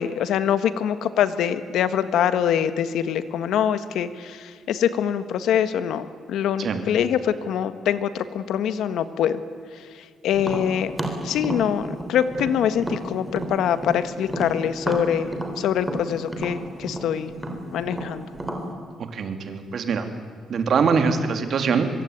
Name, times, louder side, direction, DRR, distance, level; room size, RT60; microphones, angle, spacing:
voice 1, 0.0-9.4 9.7-10.9 11.2-17.3 17.7-18.3, left 9 dB, 80° left, 12 dB, 1.5 m, -24 dB
Tap, 10.4-14.0 14.3-18.7, right 1 dB, 5° right, 3.7 m, -31 dB
voice 2, 19.0-20.1 20.5-21.9, right 5 dB, 50° right, 7 dB, 2.8 m, -23 dB
24.5 x 23.5 x 9.5 m, 2.1 s
cardioid pair, 160°, 0 cm